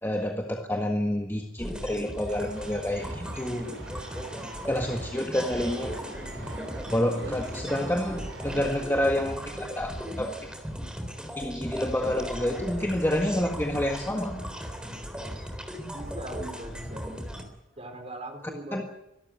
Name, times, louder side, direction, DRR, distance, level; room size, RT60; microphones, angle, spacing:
voice 1, 0.0-3.7 4.7-5.9 6.9-10.6 11.2-14.5 18.7-18.8, left 1 dB, 10° left, 1 dB, 1.6 m, -29 dB
sound 1, 1.6-17.4, equal, 5° right, 3.7 m, -37 dB
sound 2, 2.3-8.8, right 2 dB, 65° right, 4.4 m, -46 dB
voice 2, 15.9-17.1 17.8-18.8, right 1 dB, 30° right, 5 dB, 4.0 m, -40 dB
24.0 x 13.0 x 9.5 m, 0.91 s
head